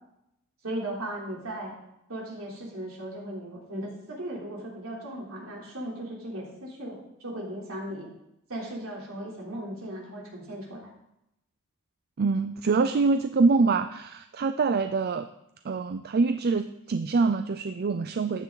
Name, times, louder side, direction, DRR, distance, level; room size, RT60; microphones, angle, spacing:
voice 1, 0.6-1.7 2.1-8.1 8.5-10.9, right 1 dB, 65° right, -2 dB, 3.6 m, -37 dB
voice 2, 12.2-15.3 15.6-18.4, right 4 dB, 45° right, 9 dB, 0.4 m, -25 dB
14.5 x 9.8 x 4.0 m, 0.84 s
head